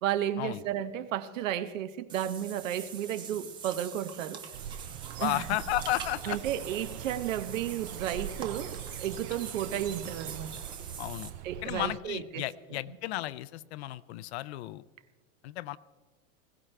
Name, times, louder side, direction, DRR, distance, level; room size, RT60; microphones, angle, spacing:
voice 1, 0.0-4.4 5.2-5.4 6.2-10.5 11.4-12.4, right 11 dB, 75° right, 1.0 m, -33 dB
Water / Bathtub (filling or washing), 2.1-11.3, right 7 dB, 10° right, 0.5 m, -44 dB
sound 1, 4.5-12.0, right 10 dB, 55° right, 0.6 m, -43 dB
sound 2, 5.0-10.8, right 8 dB, 40° right, 1.4 m, -47 dB
voice 2, 5.2-6.4 11.0-11.3 11.6-14.8 15.4-15.8, left 16 dB, 55° left, 0.5 m, -33 dB
20.5 x 16.5 x 3.3 m
supercardioid pair, 170°, 39 cm